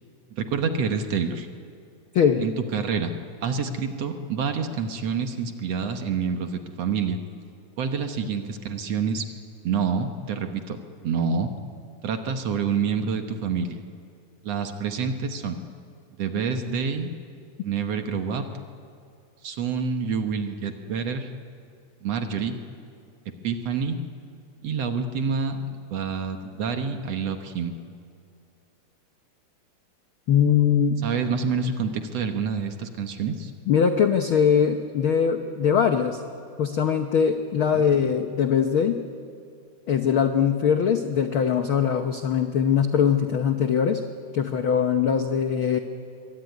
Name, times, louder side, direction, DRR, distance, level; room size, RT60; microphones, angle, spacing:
voice 1, 0.3-1.5 2.4-3.1 3.4-7.2 7.8-9.3 9.6-10.8 11.0-11.5 12.0-13.8 14.4-15.6 16.2-17.1 17.6-18.5 19.4-21.3 22.0-22.6 23.4-24.0 24.6-27.7 31.0-33.5 37.7-37.9, right 5 dB, 60° right, 6 dB, 2.0 m, -27 dB
voice 2, 2.1-2.5 30.3-31.0 33.7-36.2 36.6-39.0 39.9-44.0 44.3-45.8, left 7 dB, 75° left, 6 dB, 1.2 m, -21 dB
23.5 x 23.5 x 9.3 m, 2.4 s
omnidirectional pair, 3.7 m